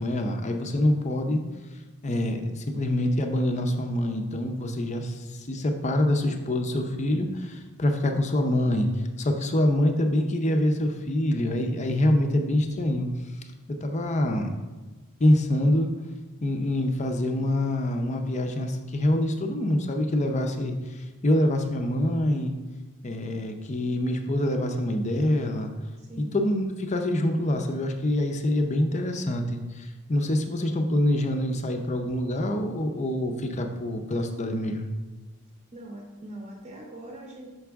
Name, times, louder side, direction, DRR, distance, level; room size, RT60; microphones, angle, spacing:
voice 1, 0.0-1.4 2.0-13.1 13.7-14.5 15.2-15.9 16.4-22.5 23.0-25.7 26.2-34.9, left 1 dB, 30° left, 4 dB, 0.5 m, -25 dB
voice 2, 26.0-26.3 35.7-37.5, right 1 dB, 30° right, 0 dB, 0.8 m, -42 dB
5.9 x 5.3 x 3.5 m, 1.2 s
head